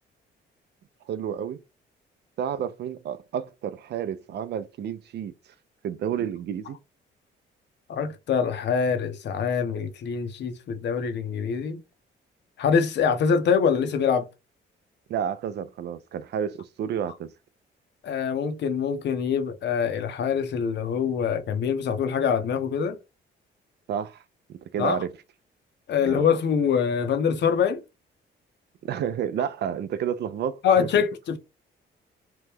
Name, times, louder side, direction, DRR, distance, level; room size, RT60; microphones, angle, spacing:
voice 1, 1.1-1.6 2.4-5.3 5.8-6.8 15.1-17.3 23.9-24.2 24.7-25.1 26.0-26.3 28.8-30.9, right 8 dB, 60° right, 0.4 m, -30 dB
voice 2, 7.9-11.8 12.6-14.3 18.0-23.0 24.8-25.0 25.9-27.8 30.6-31.4, left 6 dB, 60° left, 0.7 m, -24 dB
3.0 x 2.1 x 3.4 m
cardioid pair, 90°, 20 cm